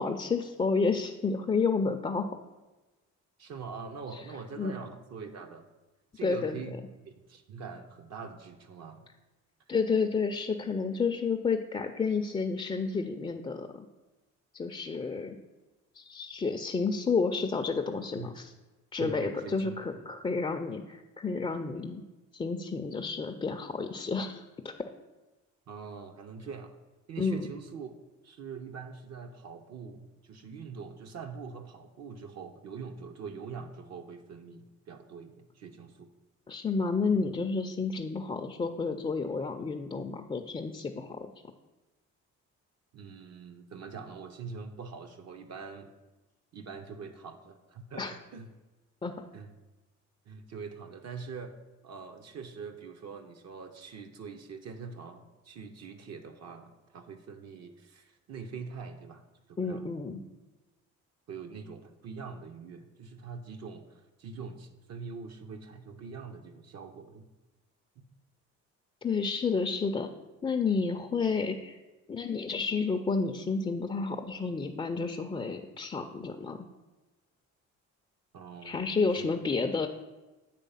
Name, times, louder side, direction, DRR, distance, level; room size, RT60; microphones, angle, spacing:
voice 1, 0.0-2.3 4.6-4.7 6.2-6.6 9.7-13.9 14.5-15.4 15.9-18.5 18.9-22.0 22.3-24.7 27.2-27.5 36.5-41.3 48.0-48.1 49.0-49.3 59.6-60.2 69.0-70.1 70.4-71.8 72.1-76.6 78.6-79.9, left 4 dB, 20° left, 4 dB, 0.4 m, -30 dB
voice 2, 3.4-5.7 6.1-6.8 7.0-9.1 18.1-18.3 19.0-20.0 25.7-26.7 27.1-27.9 28.2-36.1 42.9-45.9 46.5-48.5 49.3-49.5 50.3-59.2 59.5-60.2 61.3-67.3 68.0-68.1 78.3-79.4, right 5 dB, 60° right, 5 dB, 0.7 m, -44 dB
8.3 x 3.3 x 5.5 m, 1.1 s
cardioid pair, 90°, 30 cm